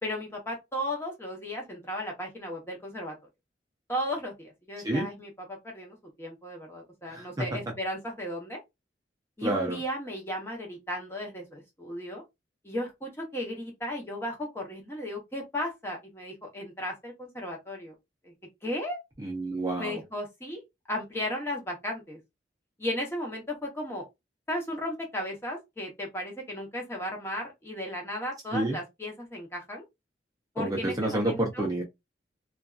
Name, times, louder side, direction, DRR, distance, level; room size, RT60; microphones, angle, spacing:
voice 1, 0.0-3.1 3.9-8.6 9.4-12.2 12.6-17.9 18.2-18.3 18.6-19.0 19.8-20.6 20.9-22.2 22.8-24.0 24.5-29.8 30.5-31.7, left 1 dB, 15° left, 0.8 m, -35 dB
voice 2, 7.1-7.5 9.4-9.8 19.2-20.0 28.5-28.8 30.6-31.8, right 1 dB, 20° right, 0.5 m, -29 dB
2.6 x 2.3 x 2.3 m
head